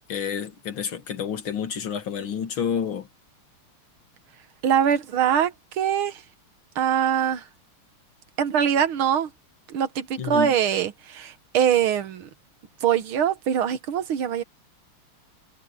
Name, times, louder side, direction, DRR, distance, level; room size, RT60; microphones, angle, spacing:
voice 1, 0.1-3.1 10.2-10.6, left 7 dB, 70° left, 2.7 m, -29 dB
voice 2, 4.6-6.2 6.8-7.4 8.4-9.3 9.7-12.3 12.8-14.4, right 9 dB, 80° right, 2.0 m, -23 dB
omnidirectional pair, 2.3 m